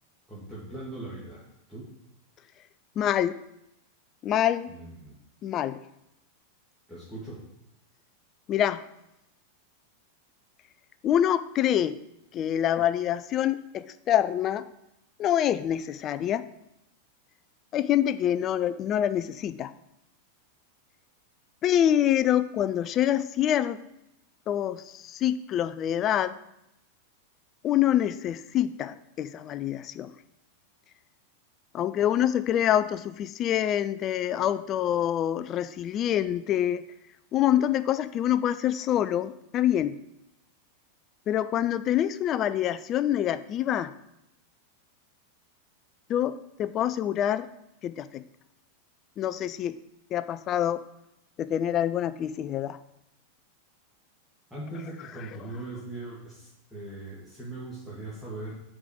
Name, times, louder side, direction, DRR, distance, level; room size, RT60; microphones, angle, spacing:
voice 1, 0.3-1.9 4.7-5.2 6.9-7.4 54.5-58.6, right 2 dB, ahead, -8 dB, 2.0 m, -40 dB
voice 2, 3.0-3.4 4.2-4.7 5.4-5.8 8.5-8.8 11.0-12.0 12.3-14.7 15.2-16.5 17.7-19.7 21.6-23.8 24.5-26.4 27.6-30.1 31.7-36.9 37.3-40.0 41.3-43.9 46.1-47.5 47.8-48.2 49.2-49.8 50.1-50.8 51.4-52.8, left 11 dB, 30° left, 13 dB, 0.4 m, -26 dB
5.8 x 4.9 x 6.6 m, 0.84 s
figure-of-eight pair, 90°, 0 cm